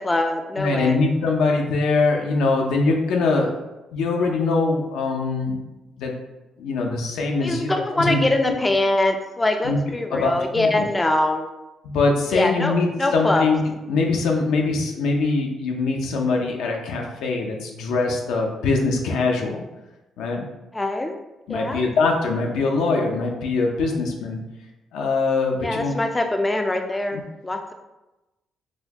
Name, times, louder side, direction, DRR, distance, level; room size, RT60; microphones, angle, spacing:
voice 1, 0.0-1.0 7.4-11.5 12.3-13.5 20.7-21.2 21.5-21.8 25.6-27.7, left 2 dB, 15° left, 5 dB, 0.3 m, -23 dB
voice 2, 0.6-3.5 3.9-5.6 6.0-6.1 6.6-8.2 9.6-9.8 10.1-10.9 11.8-13.6 13.9-19.6 20.2-20.4 21.5-24.4 24.9-26.0 27.1-27.2, left 3 dB, 85° left, 1 dB, 0.5 m, -22 dB
4.1 x 2.3 x 2.8 m, 1.0 s
cardioid pair, 90°, 0 cm